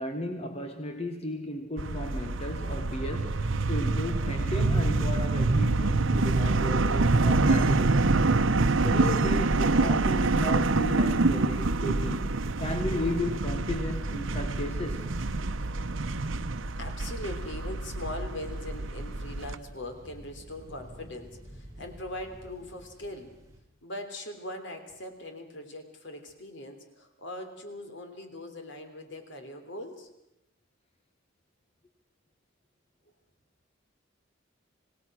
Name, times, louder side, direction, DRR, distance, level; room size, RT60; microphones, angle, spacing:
voice 1, 0.0-8.2 8.8-12.3 12.6-15.1 15.7-15.8, left 1 dB, 35° left, 5 dB, 1.6 m, -35 dB
sound 1, 1.8-19.6, right 3 dB, 85° right, 0.9 m, -26 dB
sound 2, 9.0-23.6, right 1 dB, 20° right, 4.9 m, -50 dB
voice 2, 15.9-16.3 16.8-23.3 23.8-30.1, left 1 dB, 65° left, 6 dB, 3.4 m, -41 dB
26.5 x 18.0 x 6.3 m, 0.86 s
head